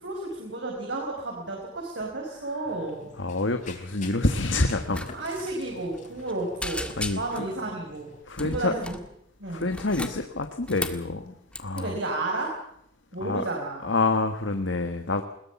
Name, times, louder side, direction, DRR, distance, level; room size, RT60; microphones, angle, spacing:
voice 1, 0.0-3.1 5.1-6.9 7.1-8.1 8.4-9.0 9.4-9.7 11.7-12.5 13.1-13.8, right 2 dB, 65° right, 0 dB, 5.1 m, -32 dB
Run, 2.6-8.2, left 3 dB, 40° left, 3.7 m, -48 dB
voice 2, 3.2-5.1 7.0-7.4 8.3-8.7 9.5-12.0 13.2-13.5 13.8-15.2, left 2 dB, 75° left, 7 dB, 1.4 m, -27 dB
sound 1, 4.9-5.1 5.3-5.5 5.9-6.3 6.6-7.5 8.3-9.1 9.6-11.1 11.5-11.8, left 1 dB, 5° left, 1.7 m, -35 dB
21.5 x 19.5 x 7.2 m, 0.71 s
head